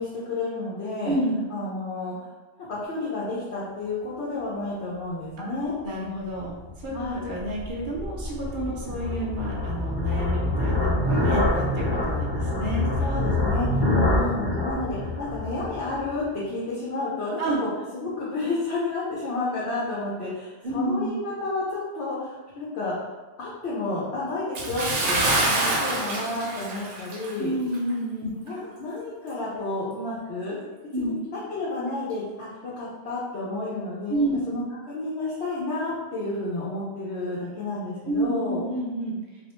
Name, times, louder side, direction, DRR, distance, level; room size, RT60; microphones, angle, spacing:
voice 1, 0.0-1.2 1.5-2.3 2.6-5.7 6.9-7.2 8.7-8.9 13.0-13.8 14.1-23.1 23.4-27.5 28.3-30.6 31.0-38.6, left 2 dB, 75° left, -7 dB, 0.9 m, -31 dB
voice 2, 1.0-1.4 5.4-5.5 5.8-6.9 7.2-12.9 13.8-14.2 17.4-17.6 20.6-21.1 27.4-28.3 30.9-31.1 34.1-34.4 38.1-39.2, right 1 dB, 60° right, -4 dB, 0.6 m, -29 dB
sound 1, 6.6-16.2, left 2 dB, 20° left, 0.8 m, -26 dB
Bathtub (filling or washing) / Splash splatter, 24.5-27.4 27.7-27.9 28.5-28.6, right 2 dB, 90° right, 0.9 m, -26 dB
2.4 x 2.1 x 2.9 m, 1.2 s
omnidirectional pair, 1.1 m